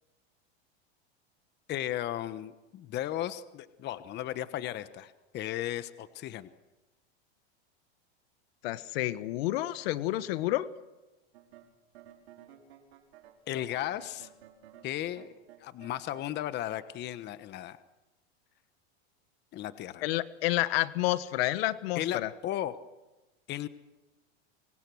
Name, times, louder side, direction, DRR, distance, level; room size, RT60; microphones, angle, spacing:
voice 1, 1.7-6.5 13.5-14.3 14.8-15.3 15.6-17.8 19.5-20.1 21.9-22.7 23.5-23.7, left 13 dB, 30° left, 13 dB, 1.2 m, -35 dB
voice 2, 8.6-10.7 20.0-22.3, left 17 dB, 65° left, 14 dB, 1.5 m, -29 dB
sound 1, 11.3-16.3, right 10 dB, 70° right, 5.1 m, -55 dB
27.0 x 24.0 x 6.4 m, 1.1 s
supercardioid pair, 135°, 33 cm